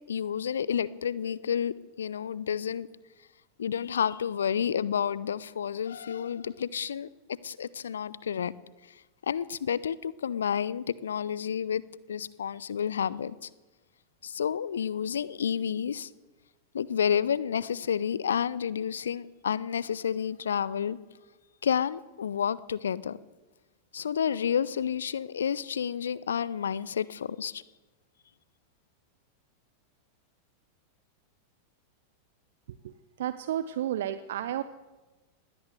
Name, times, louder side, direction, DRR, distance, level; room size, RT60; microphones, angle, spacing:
voice 1, 0.1-2.9 3.6-7.1 7.4-8.5 9.2-11.8 12.1-13.5 14.2-16.1 16.7-21.0 21.6-23.2 23.9-27.6, left 8 dB, 65° left, 20 dB, 0.8 m, -30 dB
voice 2, 33.2-34.6, right 11 dB, 60° right, 13 dB, 0.9 m, -31 dB
20.5 x 17.0 x 8.2 m, 1.2 s
figure-of-eight pair, 90°, 0 cm